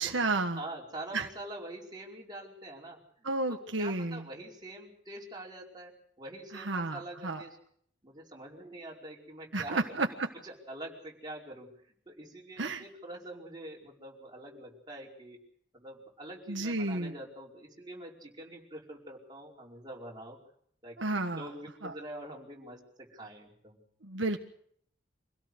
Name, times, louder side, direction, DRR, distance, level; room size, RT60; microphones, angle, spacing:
voice 1, 0.0-0.6 1.1-1.3 3.2-4.3 6.5-7.4 9.5-10.3 12.6-12.8 16.5-17.1 21.0-21.5 21.8-21.9 24.0-24.4, right 2 dB, 75° right, 5 dB, 1.5 m, -32 dB
voice 2, 0.5-7.6 8.0-10.0 10.4-11.7 12.0-15.4 15.7-20.4 20.8-23.8, right 1 dB, 25° right, -2 dB, 5.1 m, -45 dB
26.0 x 17.5 x 6.5 m, 0.64 s
head